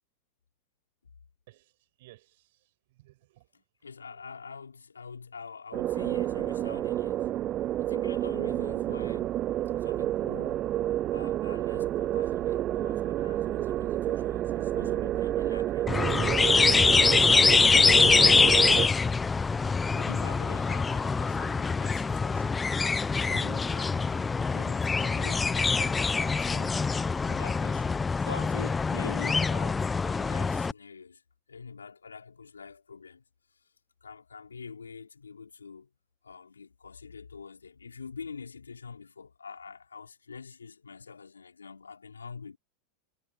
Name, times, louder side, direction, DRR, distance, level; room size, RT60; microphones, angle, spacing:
voice 1, 1.5-3.5 4.1-4.2, right 18 dB, 65° right, 5.8 m, -58 dB
voice 2, 3.5-7.3 7.8-9.4 9.8-10.7 11.0-16.3 16.9-19.1 19.9-22.6 23.1-24.1 24.5-26.8 27.2-31.2 31.5-33.2 34.0-35.9 36.2-42.6, left 5 dB, 90° left, 4.4 m, -45 dB
sound 1, 5.7-18.9, right 13 dB, 40° right, 0.3 m, -29 dB
sound 2, 15.9-30.7, left 4 dB, 15° left, 0.9 m, -24 dB
hypercardioid pair, 95°, 0 cm